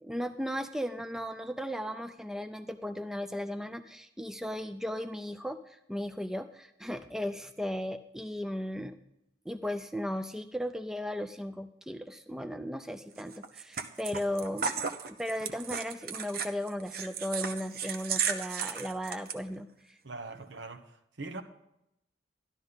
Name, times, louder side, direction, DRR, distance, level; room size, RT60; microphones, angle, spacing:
voice 1, 0.0-9.0 9.5-20.0, equal, 5° right, 0.4 m, -36 dB
sound 1, 13.2-19.3, right 6 dB, 55° right, 0.9 m, -35 dB
voice 2, 20.0-20.8 21.2-21.4, right 3 dB, 75° right, 1.3 m, -41 dB
13.0 x 11.5 x 4.0 m
head